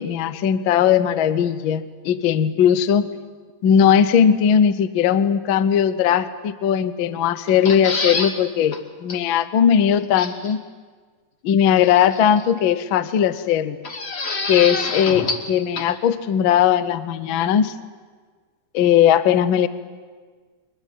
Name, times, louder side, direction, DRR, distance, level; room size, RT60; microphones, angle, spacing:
voice 1, 0.0-3.1 3.6-10.6 11.4-13.8 14.5-17.7 18.7-19.7, left 9 dB, 75° left, 14 dB, 1.1 m, -18 dB
sound 1, 7.5-8.3 8.7-8.8 9.1-9.2 10.1-10.5 11.8-12.4 13.8-15.5 15.8-15.9, left 3 dB, 60° left, 0.6 m, -27 dB
22.5 x 21.5 x 9.2 m, 1.5 s
omnidirectional pair, 3.6 m